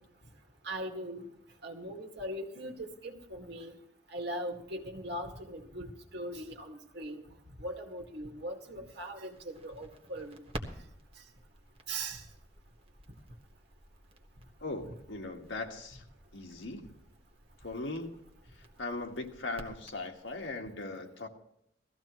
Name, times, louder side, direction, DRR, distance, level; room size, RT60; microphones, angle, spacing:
voice 1, 0.6-1.3 1.6-3.8 4.1-7.2 7.6-10.4 11.9-12.2, right 1 dB, 65° right, 3 dB, 1.9 m, -40 dB
Crackle, 9.3-20.5, right 1 dB, 30° right, 1.4 m, -51 dB
voice 2, 14.6-16.0 16.3-16.9 17.6-18.2 18.8-21.3, left 2 dB, 85° left, 3 dB, 1.7 m, -39 dB
18.5 x 14.5 x 3.1 m, 0.76 s
head